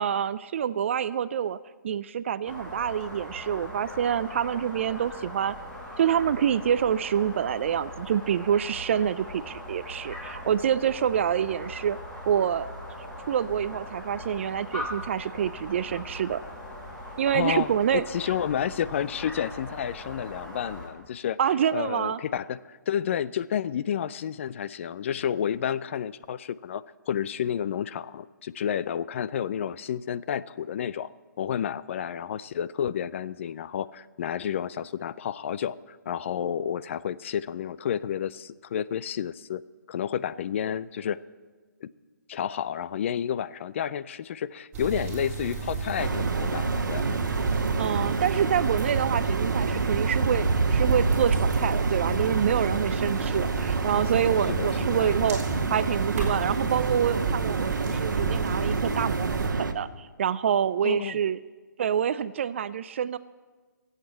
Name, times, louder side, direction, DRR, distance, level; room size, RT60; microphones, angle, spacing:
voice 1, 0.0-1.6 1.8-5.5 6.0-12.0 12.3-12.7 13.3-16.4 17.2-18.0 21.4-22.2 47.8-61.4 61.8-63.2, right 9 dB, 40° right, 16 dB, 0.3 m, -27 dB
sound 1, 2.4-20.9, left 1 dB, 5° left, 2.1 m, -40 dB
voice 2, 17.3-21.4 21.7-31.1 31.4-39.6 39.9-41.2 41.8-41.9 42.3-47.1 53.3-53.5 54.5-55.1 60.8-61.2, left 9 dB, 40° left, 17 dB, 0.4 m, -30 dB
sound 2, 44.7-59.5, right 5 dB, 20° right, 3.9 m, -33 dB
sound 3, 46.0-59.7, right 4 dB, 75° right, 1.1 m, -27 dB
15.5 x 8.2 x 8.6 m, 1.4 s
hypercardioid pair, 150°, 10 cm